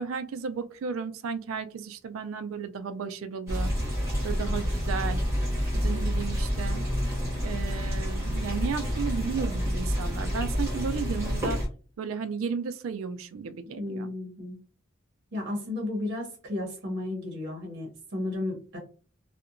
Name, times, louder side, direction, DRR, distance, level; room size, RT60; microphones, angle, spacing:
voice 1, 0.0-3.7 4.2-5.2 5.7-6.9 7.4-11.6 12.0-14.1, right 5 dB, 80° right, 11 dB, 0.4 m, -34 dB
sound 1, 3.5-11.7, equal, 15° right, 1.2 m, -28 dB
voice 2, 13.8-14.6 15.3-18.8, left 2 dB, 55° right, 0 dB, 0.8 m, -33 dB
2.7 x 2.1 x 2.5 m, 0.38 s
head